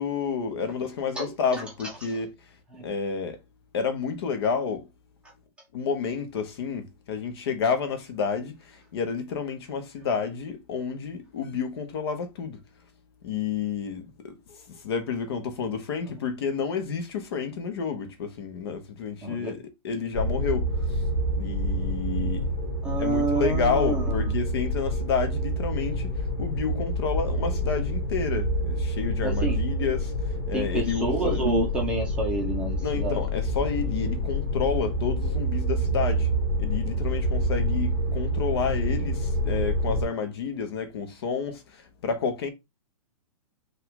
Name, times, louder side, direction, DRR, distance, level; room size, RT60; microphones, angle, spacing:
voice 1, 0.0-2.3 2.8-3.4 3.7-4.9 5.7-12.6 13.2-21.0 21.4-22.5 23.0-26.1 26.4-31.5 32.8-36.3 36.6-42.5, left 6 dB, 40° left, 1.1 m, -30 dB
voice 2, 1.2-1.6 2.0-2.2 2.7-2.9 19.2-19.5 22.8-24.3 29.2-29.6 30.5-33.2, right 2 dB, 5° right, 0.8 m, -29 dB
sound 1, 20.1-40.0, equal, 15° left, 1.8 m, -27 dB
5.4 x 2.5 x 3.7 m
hypercardioid pair, 165°, 20 cm